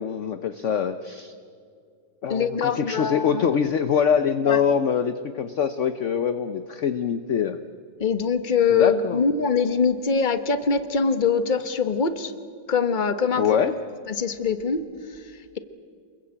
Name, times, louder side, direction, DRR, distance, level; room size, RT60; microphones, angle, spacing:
voice 1, 0.0-1.3 2.2-7.6 8.7-9.2 13.4-13.7, left 7 dB, 55° left, 10 dB, 0.9 m, -24 dB
voice 2, 2.3-3.5 4.5-4.6 8.0-12.3 12.7-13.5 14.1-14.8 15.1-15.2, left 5 dB, 30° left, 10 dB, 1.1 m, -23 dB
28.0 x 21.5 x 8.8 m, 2.3 s
omnidirectional pair, 2.2 m